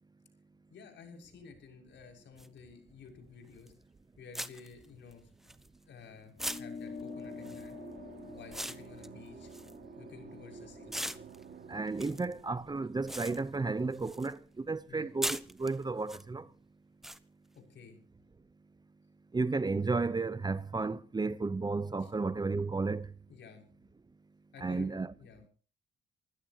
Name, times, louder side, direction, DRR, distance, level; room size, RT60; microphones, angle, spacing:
voice 1, 0.7-3.7 4.2-5.3 5.9-7.8 8.3-9.5 10.0-10.9 14.9-15.1 17.5-18.0 22.0-22.1 23.3-23.6 24.5-24.9 25.2-25.5, left 6 dB, 65° left, 6.3 m, -52 dB
sound 1, 2.4-2.5 3.7-3.8 4.3-6.0 6.4-10.5 10.9-14.4 14.6-16.2 17.0-17.2, equal, ahead, 1.1 m, -41 dB
sound 2, 6.4-11.2, left 5 dB, 30° left, 2.7 m, -47 dB
sound 3, 6.7-14.4, right 6 dB, 50° right, 3.4 m, -52 dB
voice 2, 11.7-16.5 19.3-23.1 24.6-25.1, right 3 dB, 20° right, 0.8 m, -33 dB
28.5 x 16.0 x 2.9 m
cardioid pair, 90°, 20 cm